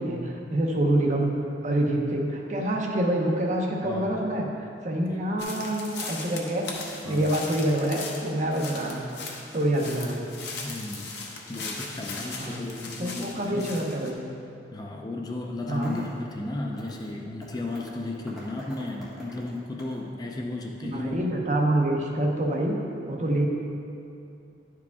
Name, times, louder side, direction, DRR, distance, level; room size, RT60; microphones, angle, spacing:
voice 1, 0.0-1.3 1.6-6.7 7.0-9.0 9.5-10.2 12.3-12.6 13.0-14.2 15.7-16.0 20.9-22.8 23.1-23.5, right 1 dB, 40° right, 0 dB, 0.8 m, -26 dB
voice 2, 3.8-4.2 5.1-5.4 7.0-7.4 10.6-11.1 11.5-13.7 14.7-21.2, left 2 dB, 20° left, 0 dB, 0.4 m, -34 dB
sound 1, 5.4-14.1, left 3 dB, 65° left, 0.9 m, -38 dB
sound 2, 15.6-16.3 16.7-17.1 17.4-20.1, equal, ahead, 1.6 m, -44 dB
10.5 x 4.8 x 3.5 m, 2.6 s
head